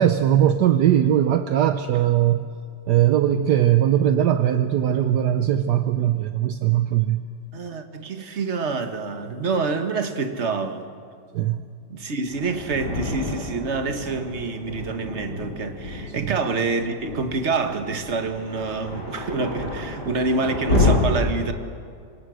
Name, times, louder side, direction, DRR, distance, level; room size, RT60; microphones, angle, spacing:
voice 1, 0.0-2.4 2.9-7.2 11.3-11.6 16.2-16.3, right 11 dB, 70° right, 1.3 m, -20 dB
voice 2, 7.5-10.9 11.9-21.5, right 4 dB, 40° right, 1.7 m, -27 dB
Thunder, 12.3-20.9, left 2 dB, 60° left, 7.5 m, -29 dB
25.5 x 25.5 x 6.4 m
omnidirectional pair, 2.0 m